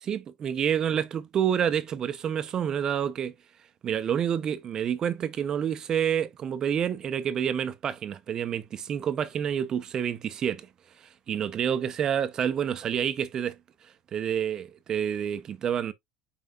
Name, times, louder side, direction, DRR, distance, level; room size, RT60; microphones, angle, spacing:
voice 1, 0.0-3.3 3.8-10.7 11.0-13.6 14.1-15.9, right 8 dB, 30° right, 0.5 m, -28 dB
5.4 x 4.4 x 2.2 m
supercardioid pair, 135°, 2 cm